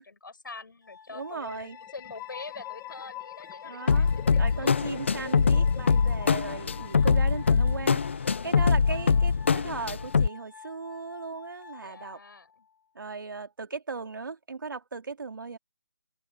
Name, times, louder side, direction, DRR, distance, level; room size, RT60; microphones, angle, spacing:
voice 1, 0.0-4.9 7.4-9.4 11.8-12.7, left 4 dB, 85° left, 5.2 m, -46 dB
Glass, 0.8-12.8, left 6 dB, 65° left, 2.6 m, -50 dB
voice 2, 1.1-1.8 3.6-4.1 4.4-8.0 8.4-12.2 12.9-15.6, right 4 dB, 90° right, 2.8 m, -37 dB
sound 1, 1.4-8.1, left 17 dB, 10° left, 1.3 m, -45 dB
sound 2, 3.9-10.3, left 5 dB, 35° left, 0.6 m, -23 dB
hypercardioid pair, 180°, 11 cm